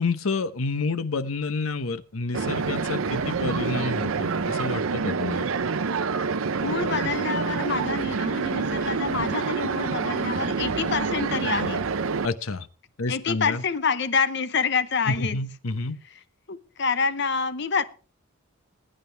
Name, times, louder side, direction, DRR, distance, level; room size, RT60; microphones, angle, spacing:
voice 1, 0.0-5.5 12.2-12.7 13.0-13.6 15.1-16.0, left 3 dB, 85° left, 0.9 m, -29 dB
sound 1, 2.3-12.3, right 4 dB, 80° right, 0.7 m, -27 dB
voice 2, 6.6-11.8 13.1-15.4 16.5-17.8, left 5 dB, 55° left, 0.8 m, -27 dB
21.0 x 9.0 x 3.4 m
head